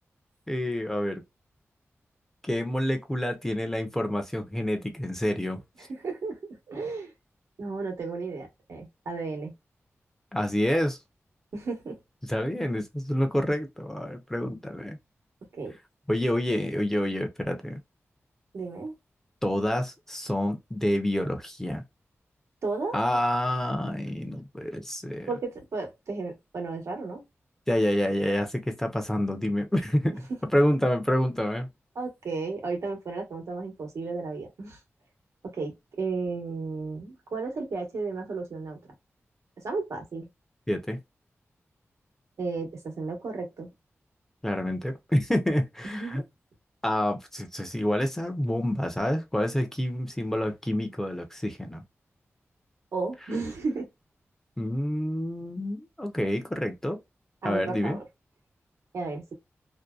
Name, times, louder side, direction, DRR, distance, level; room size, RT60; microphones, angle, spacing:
voice 1, 0.5-1.2 2.4-5.6 10.3-11.0 12.3-15.0 16.1-17.8 19.4-21.8 22.9-25.3 27.7-31.7 40.7-41.0 44.4-46.2 46.8-51.8 54.6-57.0 57.4-58.0, left 1 dB, 10° left, 0.5 m, -28 dB
voice 2, 5.8-7.1 7.6-9.5 11.5-12.0 15.5-15.8 18.5-18.9 22.6-23.0 25.3-27.2 31.9-34.8 35.4-38.8 39.6-40.3 42.4-43.7 45.8-46.2 52.9-53.9 57.4-58.0 58.9-59.3, right 3 dB, 90° right, 1.0 m, -33 dB
2.6 x 2.2 x 2.3 m
wide cardioid pair, 115°, 5 cm